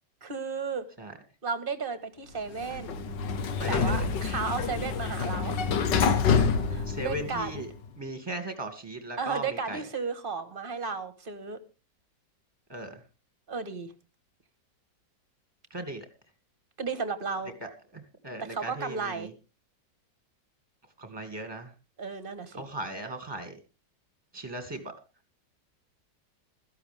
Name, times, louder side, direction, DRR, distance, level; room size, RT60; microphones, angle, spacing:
voice 1, 0.2-0.9 1.4-3.0 3.7-5.7 6.3-7.6 9.2-11.6 13.5-13.9 16.8-17.5 18.5-19.3 22.0-22.6, right 5 dB, 30° right, 11 dB, 1.6 m, -34 dB
Sliding door, 2.5-7.7, left 5 dB, 80° left, 1.8 m, -27 dB
voice 2, 3.6-4.1 6.8-7.7 8.0-9.8 12.7-13.0 15.7-16.1 17.6-19.3 21.0-21.7 22.5-23.6 24.3-24.9, right 1 dB, 15° right, 7 dB, 2.6 m, -38 dB
16.0 x 14.0 x 3.6 m, 0.32 s
omnidirectional pair, 1.9 m